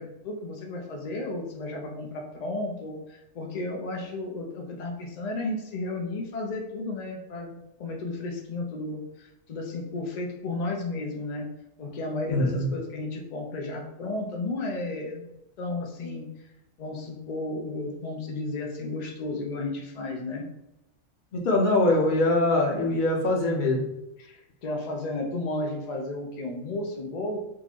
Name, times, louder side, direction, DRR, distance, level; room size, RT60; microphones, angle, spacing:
voice 1, 0.0-11.5 11.8-15.3 15.6-16.3 16.8-20.5 24.2-27.4, left 2 dB, 80° left, 0 dB, 0.3 m, -33 dB
voice 2, 12.3-12.7 21.3-23.9, left 2 dB, 50° left, 0 dB, 0.7 m, -23 dB
3.8 x 2.5 x 2.9 m, 0.88 s
omnidirectional pair, 1.4 m